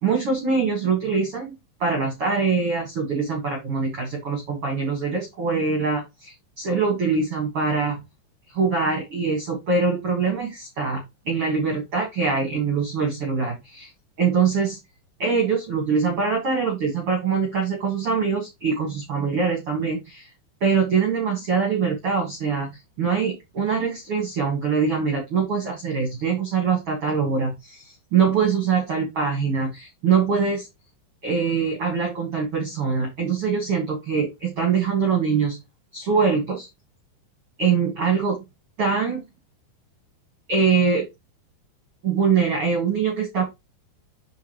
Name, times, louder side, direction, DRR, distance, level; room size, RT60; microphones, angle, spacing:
voice 1, 0.0-1.5 1.8-8.0 8.5-13.9 14.2-14.8 15.2-20.3 20.6-30.7 31.2-35.6 35.9-36.7 37.6-38.4 38.8-39.2 40.5-41.0 42.0-43.4, right 5 dB, 45° right, 1 dB, 2.1 m, -23 dB
7.2 x 5.5 x 3.3 m, 0.21 s
omnidirectional pair, 5.6 m